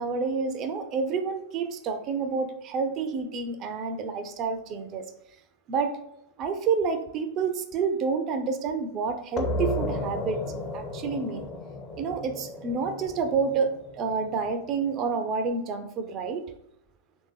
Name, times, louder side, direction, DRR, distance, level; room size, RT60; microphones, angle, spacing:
voice 1, 0.0-5.0 5.7-6.0 6.4-10.4 10.7-11.4 12.0-13.7 14.0-16.4, right 5 dB, 35° right, 8 dB, 0.4 m, -29 dB
sound 1, 9.4-14.7, left 1 dB, 30° left, 0.5 m, -33 dB
3.1 x 2.6 x 3.3 m, 0.81 s
figure-of-eight pair, 90°, 0 cm